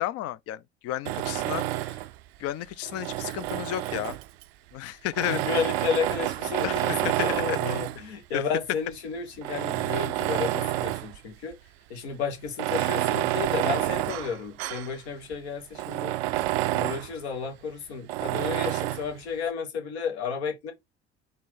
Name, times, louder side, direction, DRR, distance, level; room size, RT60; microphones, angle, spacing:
voice 1, 0.0-2.0 2.4-4.2 4.7-5.4 6.6-7.0 7.5-7.6 8.3-8.4, left 14 dB, 45° left, 0.5 m, -32 dB
Tools, 1.1-2.2 2.8-4.4 5.1-8.1 8.8-8.9 9.4-11.2 11.5-11.6 12.5-14.9 15.3-15.4 15.8-17.1 18.1-19.1, right 16 dB, 65° right, 0.5 m, -29 dB
voice 2, 5.3-11.6 11.9-16.1 16.7-20.7, left 6 dB, 70° left, 1.3 m, -32 dB
4.1 x 3.2 x 3.9 m
figure-of-eight pair, 60°, 33 cm